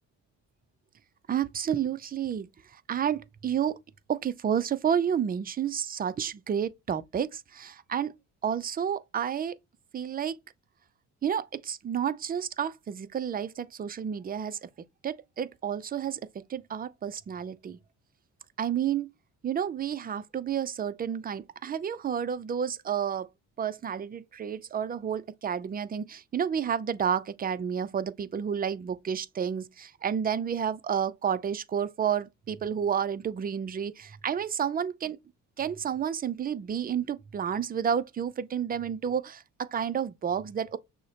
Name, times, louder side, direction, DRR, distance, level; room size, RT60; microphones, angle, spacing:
voice 1, 1.3-2.5 2.9-3.8 4.1-8.1 8.4-9.6 9.9-10.4 11.2-14.7 15.0-17.8 18.6-19.1 19.4-23.3 23.6-35.2 35.6-40.8, right 8 dB, 25° right, 0.4 m, -30 dB
6.2 x 2.1 x 2.9 m
cardioid pair, 80°, 35 cm